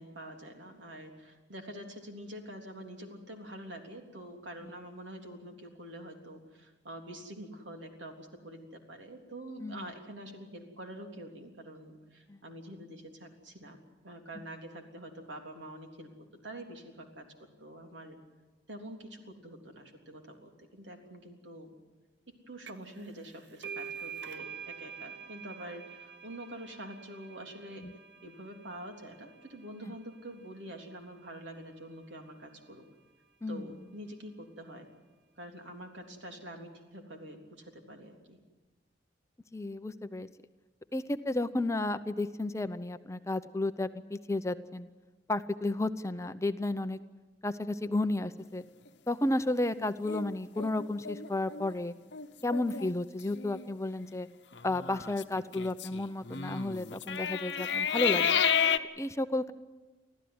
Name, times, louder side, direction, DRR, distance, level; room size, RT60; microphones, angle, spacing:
voice 1, 0.0-16.1 16.4-17.3 17.6-18.2 18.7-21.7 22.5-27.8 28.2-32.8 33.5-34.9 35.4-38.4, right 1 dB, 85° right, 3 dB, 3.5 m, -46 dB
sound 1, 22.7-23.0 23.2-30.6, right 7 dB, 70° right, 0.9 m, -46 dB
voice 2, 39.5-40.3 40.9-44.9 45.3-47.0 47.4-48.6 49.1-51.9 52.4-54.3 54.6-58.4 59.0-59.5, left 2 dB, 15° left, 11 dB, 0.7 m, -32 dB
sound 2, 50.0-51.7 52.1-52.3 52.5-52.9 53.3-53.6 54.5-58.8, left 7 dB, 70° left, 0.9 m, -31 dB
25.0 x 15.0 x 9.6 m, 1.2 s
head